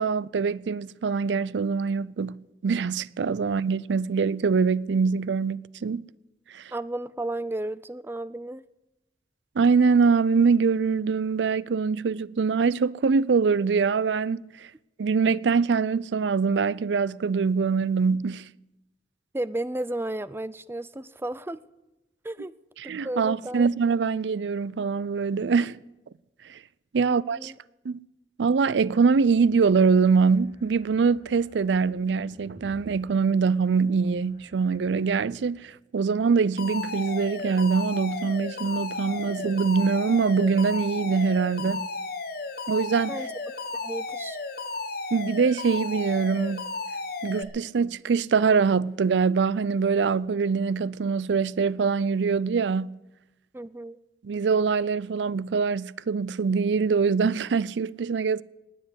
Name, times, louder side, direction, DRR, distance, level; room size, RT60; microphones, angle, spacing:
voice 1, 0.0-6.0 6.5-6.6 9.6-14.7 15.0-18.5 22.8-25.8 26.5-26.6 26.9-27.5 27.8-28.0 28.4-41.9 42.7-43.2 45.1-46.7 47.2-53.0 54.2-58.4, right 5 dB, 85° right, 0.4 m, -24 dB
voice 2, 6.7-8.6 19.3-21.6 22.2-22.5 22.8-23.6 27.0-27.5 43.1-43.3 43.8-44.4 53.5-54.0, right 1 dB, 15° right, 0.4 m, -33 dB
sound 1, 28.5-35.9, equal, 40° left, 2.9 m, -54 dB
Alarm, 36.6-47.4, left 3 dB, 60° left, 1.5 m, -34 dB
19.0 x 7.4 x 9.7 m
head